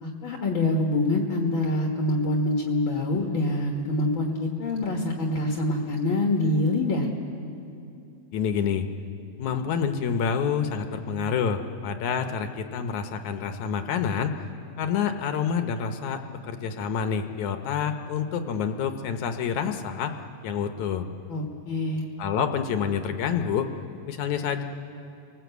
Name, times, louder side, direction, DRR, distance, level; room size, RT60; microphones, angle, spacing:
voice 1, 0.0-7.1 21.3-22.0, left 2 dB, 50° left, 1 dB, 1.6 m, -25 dB
voice 2, 8.3-8.9 9.4-14.4 14.8-21.0 22.2-23.7 24.1-24.6, left 7 dB, 70° left, 7 dB, 2.0 m, -28 dB
29.0 x 20.0 x 8.1 m, 2.6 s
omnidirectional pair, 4.1 m